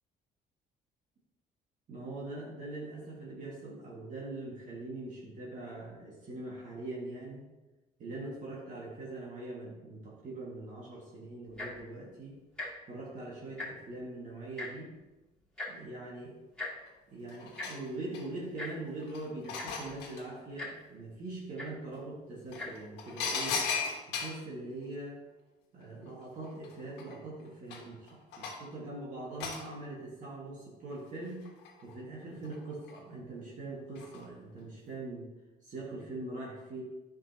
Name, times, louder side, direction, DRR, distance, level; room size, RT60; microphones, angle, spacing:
voice 1, 1.9-7.4 8.0-12.4 12.9-14.9 15.7-16.4 17.1-23.6 24.1-25.2 25.7-31.5 31.8-35.3 35.6-36.8, right 2 dB, 50° right, -5 dB, 1.8 m, -42 dB
Tick-tock, 11.5-11.8 12.5-12.7 13.0-13.1 13.4-13.9 14.6-14.7 15.6-15.7 16.6-16.7 17.6-17.7 18.6-18.7 19.3-19.4 19.5-19.9 20.6-20.7 21.6-21.7 22.5-22.7 23.4-23.5, left 2 dB, 5° left, 2.5 m, -39 dB
sound 1, 16.9-17.0 17.3-18.5 19.0-20.2 21.9-22.0 22.5-24.5 26.1-26.2 26.4-28.7 29.4-29.6 31.2-31.9 32.4-33.0 33.9-34.2 34.6-34.7, left 5 dB, 85° left, 1.3 m, -37 dB
9.7 x 5.5 x 2.8 m, 1.1 s
cardioid pair, 110°, 17 cm